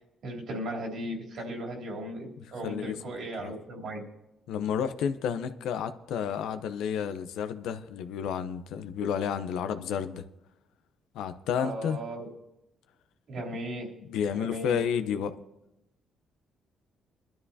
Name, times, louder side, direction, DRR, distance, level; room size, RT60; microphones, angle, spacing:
voice 1, 0.2-4.0 11.6-12.3 13.3-13.9 14.3-14.8, right 1 dB, 70° right, 3.2 m, -36 dB
voice 2, 2.4-3.0 3.4-3.5 4.5-10.2 11.1-12.0 14.1-15.3, left 8 dB, 90° left, 0.7 m, -31 dB
21.5 x 12.5 x 2.8 m
cardioid pair, 90°, 0 cm